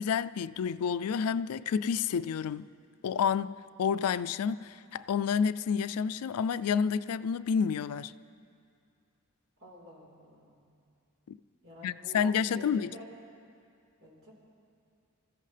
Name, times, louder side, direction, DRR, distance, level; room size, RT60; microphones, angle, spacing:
voice 1, 0.0-2.7 3.0-8.1 11.3-11.4 11.8-12.9, left 7 dB, 90° left, 0.4 m, -29 dB
voice 2, 9.6-10.6 11.6-13.0 14.0-14.3, right 1 dB, 85° right, 4.2 m, -50 dB
26.0 x 14.5 x 3.3 m
head